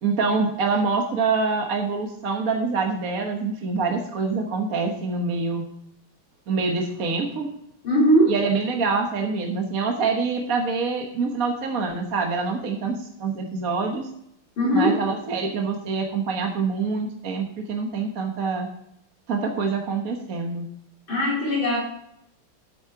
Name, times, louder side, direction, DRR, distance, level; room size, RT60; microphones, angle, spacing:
voice 1, 0.0-5.6 6.5-7.5 8.3-14.1 14.7-18.7 19.3-20.6, right 4 dB, 45° right, 2 dB, 1.4 m, -25 dB
voice 2, 7.8-8.3 14.6-15.0 21.1-21.8, equal, 65° left, -5 dB, 4.2 m, -19 dB
10.5 x 8.7 x 4.6 m, 0.76 s
omnidirectional pair, 2.4 m